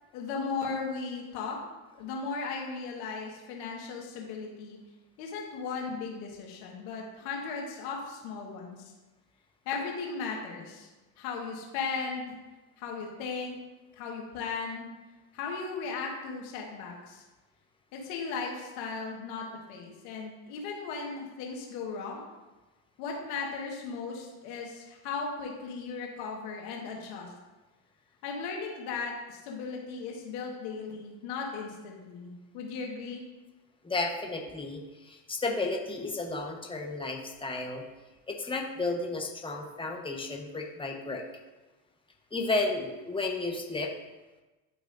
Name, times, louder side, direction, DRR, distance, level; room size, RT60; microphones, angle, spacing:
voice 1, 0.1-1.6 2.0-4.8 5.2-8.9 9.6-10.9 11.2-12.3 12.8-13.6 14.0-14.9 15.3-17.2 17.9-22.3 23.0-27.3 28.2-33.2, left 4 dB, 85° left, -1 dB, 1.8 m, -36 dB
voice 2, 33.8-37.8 38.3-41.2 42.3-43.9, left 3 dB, 10° left, 1 dB, 1.1 m, -33 dB
11.5 x 4.9 x 2.6 m, 1.1 s
supercardioid pair, 85°, 49 cm